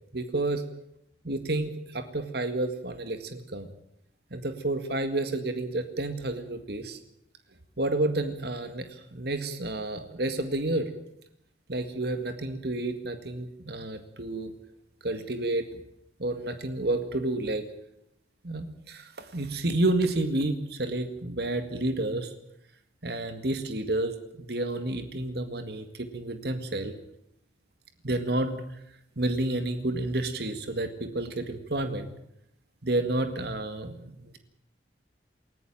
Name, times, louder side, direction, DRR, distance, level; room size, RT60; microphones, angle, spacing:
voice 1, 0.1-0.6 1.2-3.7 4.3-7.0 7.8-10.9 11.7-14.5 15.0-15.8 16.2-17.6 18.4-22.3 23.0-26.9 28.0-28.6 29.2-32.1 32.8-34.4, right 2 dB, 60° right, 9 dB, 2.0 m, -30 dB
19.5 x 16.5 x 9.1 m, 0.77 s
head